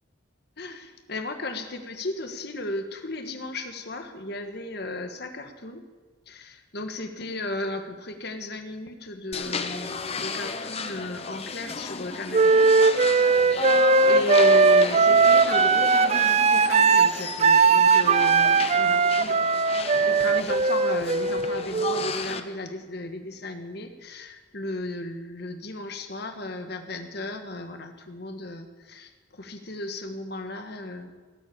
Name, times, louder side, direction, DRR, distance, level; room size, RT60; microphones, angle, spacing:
voice 1, 0.6-5.8 6.3-12.8 13.2-13.7 14.1-19.4 19.9-31.1, left 2 dB, 55° left, 6 dB, 1.5 m, -35 dB
sound 1, 9.3-22.4, left 4 dB, 30° left, 0.8 m, -34 dB
Wind instrument woodwind instrument, 12.3-22.1, right 4 dB, 30° right, 0.4 m, -19 dB
18.0 x 8.2 x 8.8 m, 1.4 s
head